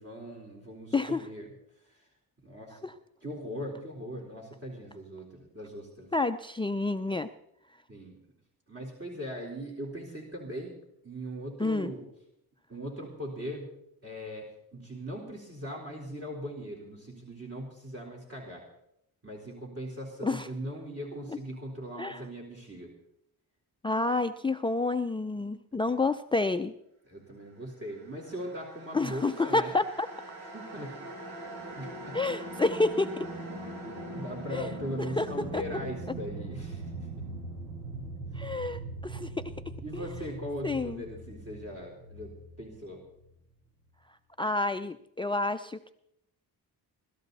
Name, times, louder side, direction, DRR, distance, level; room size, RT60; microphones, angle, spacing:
voice 1, 0.0-1.5 1.9-2.1 2.4-2.8 3.2-6.1 7.9-8.2 8.7-10.8 11.0-12.0 12.7-18.6 19.2-22.9 27.1-29.7 30.5-31.1 31.8-32.2 34.1-37.3 39.8-43.0, equal, 35° right, 0 dB, 4.1 m, -40 dB
voice 2, 6.1-7.3 11.6-11.9 20.2-20.5 21.3-21.4 22.0-22.2 23.8-26.7 28.9-30.1 32.1-33.3 34.5-34.7 35.2-35.3 35.5-35.6 38.3-39.4 39.9-40.0 40.6-41.0 44.4-45.9, left 3 dB, 15° left, 8 dB, 0.5 m, -29 dB
sound 1, 28.1-43.3, right 2 dB, 80° right, 4.8 m, -41 dB
22.0 x 13.0 x 4.1 m, 0.78 s
cardioid pair, 90°, 39 cm